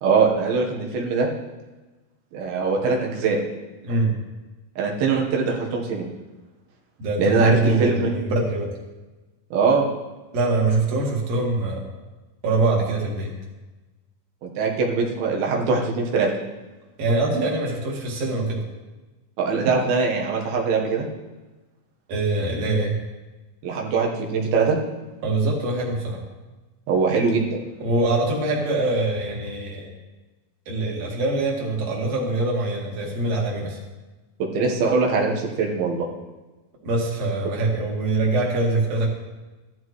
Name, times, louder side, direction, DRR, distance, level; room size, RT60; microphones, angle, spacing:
voice 1, 0.0-1.3 2.3-3.4 4.8-6.1 7.2-8.1 9.5-9.9 14.4-16.3 19.4-21.1 23.6-24.8 26.9-27.6 34.4-36.1, right 4 dB, 85° right, -1 dB, 3.2 m, -22 dB
voice 2, 3.8-4.2 7.0-8.7 10.3-11.8 12.4-13.3 17.0-18.6 22.1-22.9 25.2-26.2 27.8-29.9 30.7-33.8 36.8-39.1, right 2 dB, 50° right, -2 dB, 2.9 m, -23 dB
15.0 x 12.5 x 3.1 m, 1.2 s
omnidirectional pair, 4.1 m